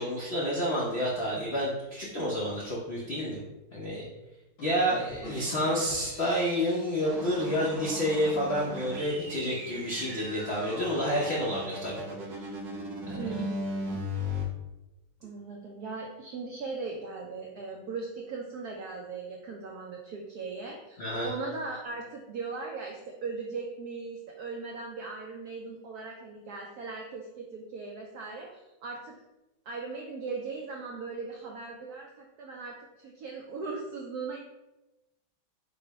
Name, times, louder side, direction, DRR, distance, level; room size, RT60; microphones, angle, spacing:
voice 1, 0.0-3.4 3.7-4.0 4.6-12.0 12.3-12.6 13.1-13.2 21.0-21.3, equal, 70° left, -5 dB, 0.6 m, -29 dB
sound 1, 4.6-8.3, left 2 dB, 85° left, 2.3 m, -47 dB
voice 2, 5.2-5.9 13.2-14.0 15.2-29.1 29.7-34.4, right 4 dB, 85° right, 0 dB, 0.8 m, -39 dB
sound 2, 7.0-14.4, left 1 dB, 60° right, 1.1 m, -37 dB
4.9 x 2.1 x 4.6 m, 1.0 s
omnidirectional pair, 2.2 m